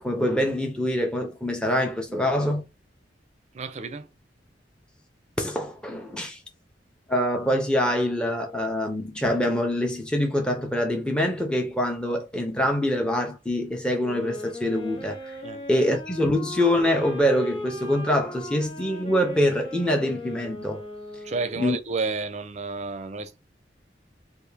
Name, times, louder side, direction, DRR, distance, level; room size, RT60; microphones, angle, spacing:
voice 1, 0.0-2.6 5.4-6.4 7.1-15.3 15.7-20.8 21.6-21.8, left 1 dB, 5° left, 0.6 m, -25 dB
voice 2, 3.5-4.1 15.4-15.6 21.2-23.4, right 4 dB, 40° right, 0.5 m, -31 dB
sound 1, 14.0-21.8, left 1 dB, 30° left, 1.1 m, -38 dB
3.4 x 2.5 x 3.3 m
head